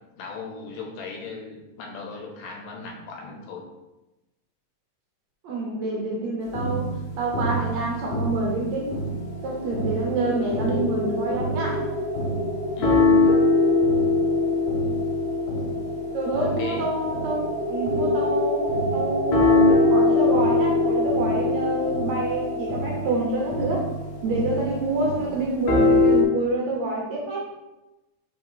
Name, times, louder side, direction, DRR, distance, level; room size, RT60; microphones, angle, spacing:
voice 1, 0.2-3.6 12.7-13.2 16.6-16.9, left 4 dB, 85° left, 0 dB, 2.6 m, -37 dB
voice 2, 5.4-6.9 7.2-8.9 9.4-11.8 16.1-17.4 17.7-23.9 24.2-27.5, right 2 dB, 65° right, -2 dB, 2.0 m, -27 dB
sound 1, 6.5-9.4 9.7-18.3 18.7-26.2, left 2 dB, 65° left, 2.2 m, -23 dB
sound 2, 8.6-25.4, left 1 dB, 40° right, 1.7 m, -31 dB
5.2 x 3.8 x 4.7 m, 1.0 s
omnidirectional pair, 3.8 m